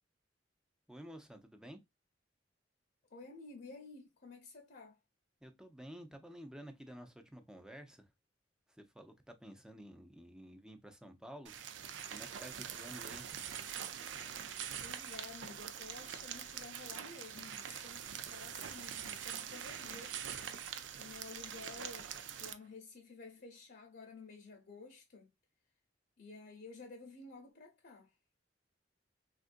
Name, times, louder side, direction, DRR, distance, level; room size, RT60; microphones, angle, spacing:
voice 1, 0.9-1.8 5.4-8.1 8.7-11.6 12.1-13.3, equal, 5° right, 0.5 m, -52 dB
voice 2, 3.1-5.0 14.8-20.2 21.0-22.1 22.4-25.3 26.2-28.1, left 3 dB, 55° left, 0.8 m, -52 dB
sound 1, 11.5-22.5, right 8 dB, 75° right, 0.4 m, -44 dB
3.6 x 2.5 x 2.5 m
head